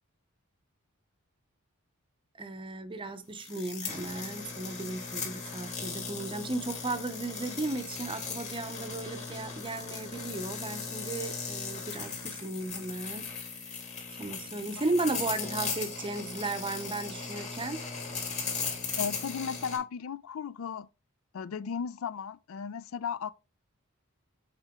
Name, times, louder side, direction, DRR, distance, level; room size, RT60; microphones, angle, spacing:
voice 1, 2.4-13.8 14.1-17.8, right 2 dB, 20° right, 0.6 m, -35 dB
sound 1, 3.4-19.8, left 5 dB, 30° left, 2.1 m, -38 dB
voice 2, 19.0-20.9 21.3-23.3, left 6 dB, 65° left, 0.4 m, -35 dB
7.6 x 4.3 x 3.6 m
head